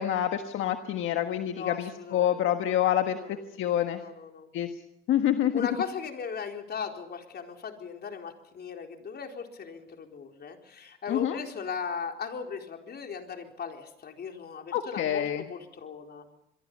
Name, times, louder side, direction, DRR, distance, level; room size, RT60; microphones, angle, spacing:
voice 1, 0.0-3.2 3.6-4.0 4.5-4.7 5.1-5.7 11.1-11.4 14.7-15.4, left 11 dB, 85° left, 7 dB, 1.5 m, -27 dB
voice 2, 1.5-2.4 3.1-3.4 3.9-4.5 5.5-16.3, left 6 dB, 55° left, 4 dB, 4.2 m, -38 dB
26.0 x 23.0 x 5.5 m, 0.81 s
cardioid pair, 90°, 20 cm